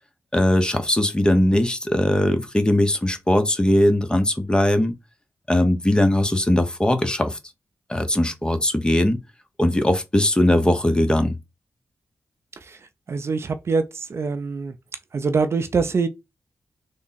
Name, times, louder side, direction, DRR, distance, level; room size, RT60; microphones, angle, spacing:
voice 1, 0.3-4.9 5.5-7.4 7.9-9.2 9.6-11.4, left 1 dB, 15° left, 0.7 m, -20 dB
voice 2, 13.1-14.8 15.1-16.1, right 4 dB, 55° right, 0.5 m, -24 dB
3.4 x 2.0 x 4.0 m
cardioid pair, 45°, 5 cm